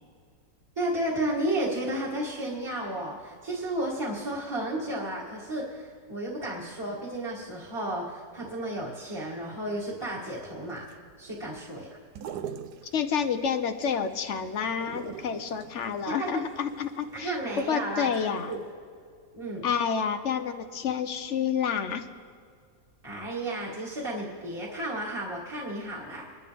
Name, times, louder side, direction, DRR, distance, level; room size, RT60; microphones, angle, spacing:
voice 1, 0.8-10.9 11.2-11.9 16.1-16.3 17.2-18.6 19.3-19.7 23.0-26.3, right 1 dB, 15° right, -4 dB, 1.9 m, -33 dB
sound 1, 10.3-18.2 18.5-18.6, right 8 dB, 75° right, 1.3 m, -44 dB
voice 2, 12.9-18.5 19.6-22.1, left 7 dB, 55° left, 9 dB, 0.8 m, -29 dB
25.0 x 11.5 x 3.5 m, 2.1 s
omnidirectional pair, 1.8 m